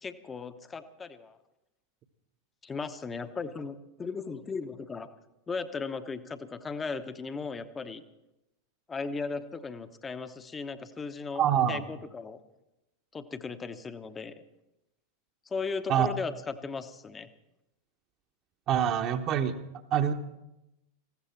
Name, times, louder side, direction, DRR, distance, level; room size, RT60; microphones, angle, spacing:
voice 1, 0.0-1.4 2.6-5.1 5.5-8.0 8.9-12.4 13.1-14.3 15.5-17.3, left 4 dB, 15° left, 11 dB, 1.0 m, -37 dB
voice 2, 11.3-11.8 15.9-16.1 18.7-19.5 19.9-20.1, right 9 dB, 35° right, 7 dB, 1.1 m, -25 dB
19.5 x 15.5 x 4.4 m, 0.92 s
figure-of-eight pair, 90°, 0 cm